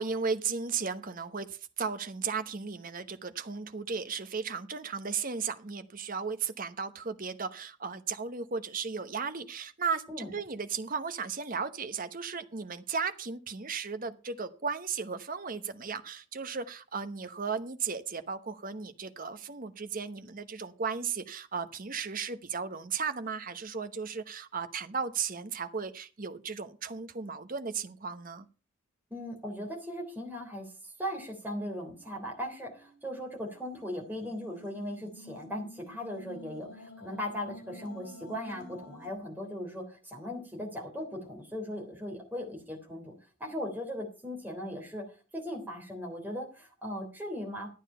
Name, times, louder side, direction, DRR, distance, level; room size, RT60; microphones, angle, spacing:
voice 1, 0.0-28.5, right 5 dB, 40° right, 11 dB, 1.0 m, -35 dB
voice 2, 29.1-43.1 43.4-45.0 45.3-47.7, equal, 10° right, 0 dB, 3.3 m, -38 dB
sound 1, 31.9-39.1, left 1 dB, 80° left, 3.2 m, -51 dB
12.5 x 9.0 x 5.5 m, 0.34 s
head